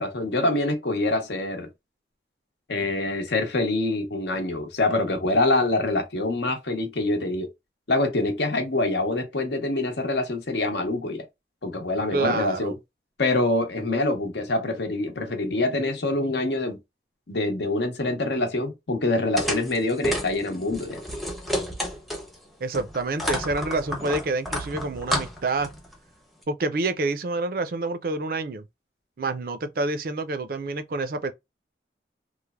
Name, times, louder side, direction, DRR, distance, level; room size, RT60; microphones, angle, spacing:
voice 1, 0.0-1.7 2.7-7.5 7.9-11.2 11.6-12.7 13.2-16.8 17.3-21.0, left 2 dB, 75° left, 0.8 m, -25 dB
voice 2, 12.1-12.7 22.6-25.7 26.5-28.6 29.2-31.3, right 3 dB, 50° right, 0.4 m, -27 dB
sound 1, 19.4-22.4 22.7-25.9, equal, ahead, 0.5 m, -30 dB
3.1 x 2.1 x 2.3 m
head